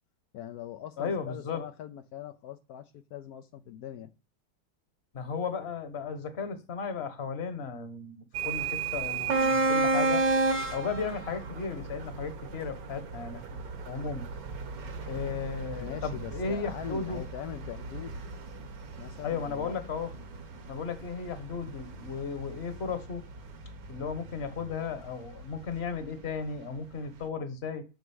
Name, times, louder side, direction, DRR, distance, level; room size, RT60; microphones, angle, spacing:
voice 1, 0.3-4.1 15.8-18.2 19.0-19.7, left 10 dB, 80° left, 0.8 m, -42 dB
voice 2, 1.0-1.6 5.1-10.2 10.7-13.4 13.9-14.3 15.1-17.2 19.2-20.1 20.7-23.2 23.9-27.8, left 5 dB, 40° left, 1.1 m, -35 dB
sound 1, 8.3-26.1, right 3 dB, 50° right, 1.4 m, -33 dB
7.9 x 6.2 x 6.9 m
omnidirectional pair, 2.3 m